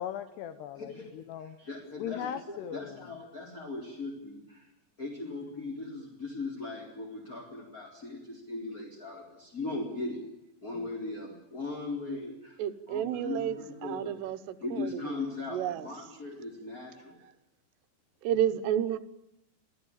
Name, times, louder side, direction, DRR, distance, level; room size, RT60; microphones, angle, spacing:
voice 1, 0.0-1.6 2.0-3.0 10.7-10.9, left 9 dB, 75° left, 10 dB, 3.0 m, -38 dB
voice 2, 0.7-1.1 1.4-4.7 5.0-10.2 10.6-12.6 12.9-14.1 14.6-17.2, left 3 dB, 20° left, -2 dB, 4.4 m, -39 dB
voice 3, 12.6-15.9 18.2-19.0, right 10 dB, 75° right, 12 dB, 3.2 m, -31 dB
27.0 x 17.0 x 8.9 m, 0.89 s
omnidirectional pair, 5.1 m